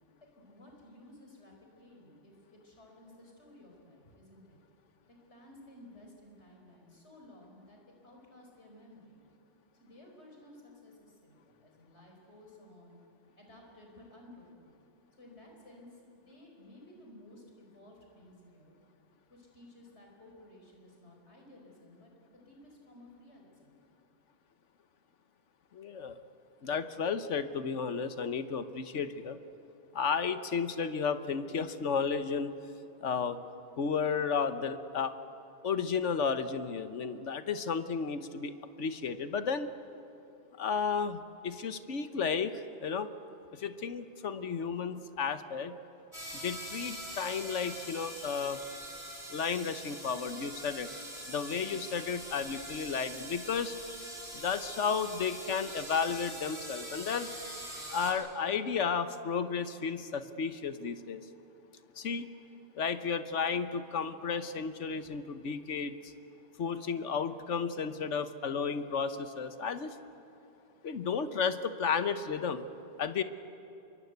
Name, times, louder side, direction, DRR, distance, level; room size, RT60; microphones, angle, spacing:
voice 1, 0.2-4.6 5.1-9.2 9.8-13.0 13.3-14.7 15.2-18.8 19.3-23.8, left 1 dB, 70° left, 1 dB, 5.1 m, -55 dB
voice 2, 25.7-26.2 26.6-29.4 29.9-32.5 33.0-33.4 33.8-35.1 35.6-39.7 40.6-43.1 43.5-45.7 46.3-48.6 49.3-50.9 51.3-53.8 54.3-57.3 57.9-61.2 62.0-62.3 62.8-66.1 66.6-69.9 70.8-72.7 73.0-73.2, left 6 dB, 85° left, 11 dB, 1.4 m, -33 dB
sound 1, 46.1-58.1, right 1 dB, 30° right, 5.0 m, -44 dB
26.0 x 23.0 x 8.1 m, 2.8 s
omnidirectional pair, 1.2 m